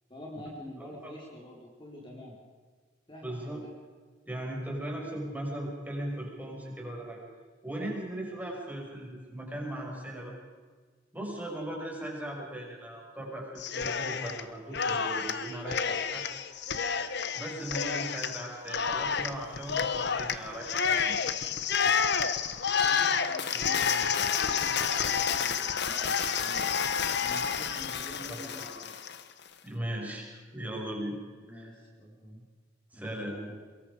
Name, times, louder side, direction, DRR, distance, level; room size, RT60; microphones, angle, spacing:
voice 1, 0.1-2.3 3.1-3.7 22.8-26.7 27.2-28.9 31.4-32.4 32.9-33.6, equal, 25° left, -2 dB, 4.2 m, -46 dB
voice 2, 0.8-1.1 3.2-3.6 4.3-7.2 7.6-10.3 11.1-16.2 17.3-21.2 28.3-28.7 29.6-31.2 31.5-31.7 32.9-33.3, right 1 dB, 10° right, -1 dB, 6.0 m, -38 dB
Cheering, 13.6-14.4 14.7-29.2, left 6 dB, 60° left, 1.2 m, -29 dB
24.0 x 22.5 x 5.0 m, 1.5 s
head